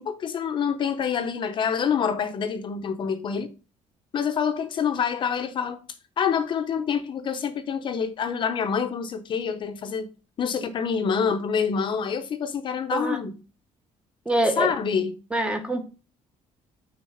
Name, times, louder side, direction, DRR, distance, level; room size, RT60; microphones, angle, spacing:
voice 1, 0.0-3.5 4.1-5.8 6.2-10.1 10.4-13.4 14.6-15.1, left 6 dB, 35° left, 0.8 m, -26 dB
voice 2, 14.3-14.7 15.3-15.8, right 1 dB, 10° right, 0.9 m, -24 dB
6.2 x 4.4 x 5.7 m
cardioid pair, 170°, 13 cm